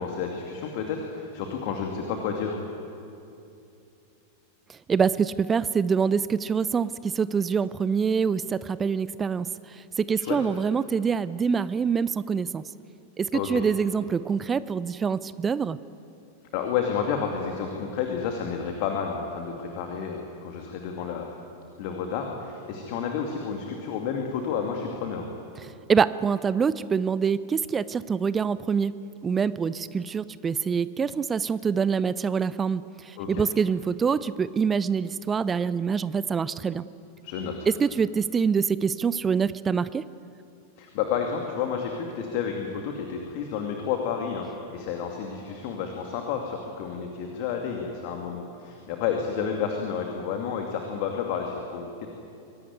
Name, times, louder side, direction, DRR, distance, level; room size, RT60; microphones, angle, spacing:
voice 1, 0.0-2.6 10.2-10.4 13.3-13.6 16.5-21.3 21.8-25.3 33.2-33.4 37.2-37.5 40.8-52.1, left 6 dB, 45° left, 2 dB, 2.5 m, -30 dB
voice 2, 4.9-12.6 13.2-15.8 25.6-29.0 29.2-36.8 37.7-40.0, right 6 dB, 20° right, 17 dB, 0.6 m, -25 dB
24.0 x 17.5 x 9.5 m, 2.6 s
figure-of-eight pair, 90°, 0 cm